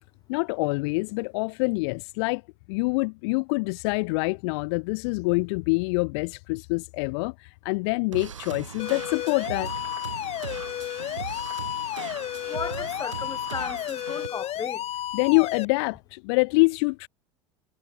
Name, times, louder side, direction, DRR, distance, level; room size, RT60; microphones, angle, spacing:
voice 1, 0.3-2.4 2.7-9.7 15.1-17.1, left 29 dB, 55° left, 1.6 m, -25 dB
sound 1, 8.1-14.3, right 8 dB, 75° right, 1.5 m, -39 dB
sound 2, 8.8-15.7, left 13 dB, 40° left, 2.7 m, -32 dB
voice 2, 12.5-14.8, left 6 dB, 25° left, 3.3 m, -35 dB
figure-of-eight pair, 75°, 16 cm